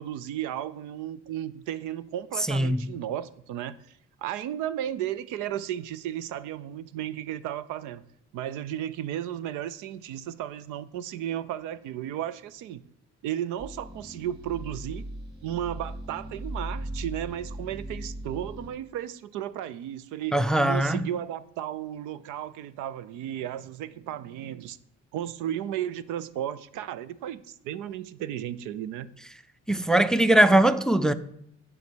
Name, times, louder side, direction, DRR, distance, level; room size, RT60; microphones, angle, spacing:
voice 1, 0.0-3.8 4.2-8.0 8.3-12.8 13.2-15.0 15.4-20.4 20.6-24.8 25.1-29.1, right 11 dB, 90° right, 0.6 m, -34 dB
voice 2, 2.5-2.9 20.3-21.1 29.7-31.1, right 1 dB, ahead, 0.4 m, -21 dB
sound 1, 13.6-18.7, right 1 dB, 35° right, 2.6 m, -38 dB
8.4 x 5.4 x 6.1 m
cardioid pair, 100°, 29 cm